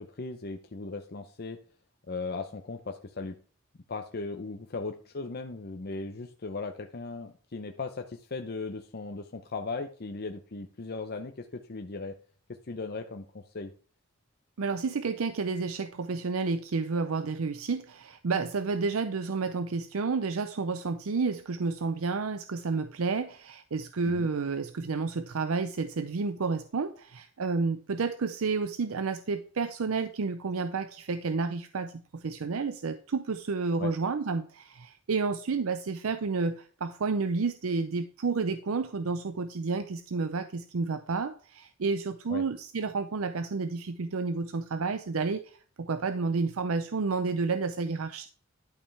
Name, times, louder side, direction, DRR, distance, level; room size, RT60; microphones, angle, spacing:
voice 1, 0.0-1.6 2.1-3.3 3.9-12.2 12.5-13.7 24.1-24.3 33.8-33.9 42.3-42.4, left 3 dB, 50° left, 6 dB, 0.7 m, -37 dB
voice 2, 14.6-48.3, right 4 dB, 90° right, 10 dB, 0.6 m, -30 dB
11.5 x 5.5 x 3.3 m, 0.40 s
head